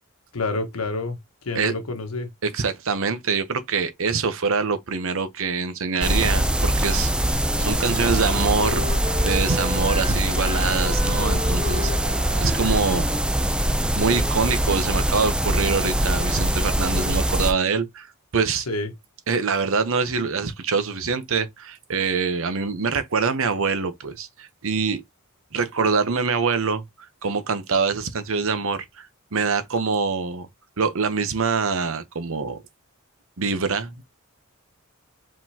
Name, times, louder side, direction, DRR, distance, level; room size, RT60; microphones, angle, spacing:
voice 1, 0.3-2.3 18.7-18.9, left 3 dB, 80° left, 1.3 m, -28 dB
voice 2, 2.4-7.1 7.6-8.8 9.2-11.9 12.4-13.1 13.9-18.1 18.3-18.7 19.3-25.0 25.5-26.8 27.2-30.5 30.8-32.6 33.4-34.0, right 5 dB, 65° right, 0.8 m, -24 dB
sound 1, 6.0-17.5, right 1 dB, 5° right, 0.4 m, -23 dB
Wind instrument woodwind instrument, 7.0-13.8, left 2 dB, 30° right, 2.4 m, -35 dB
5.0 x 3.8 x 2.8 m
head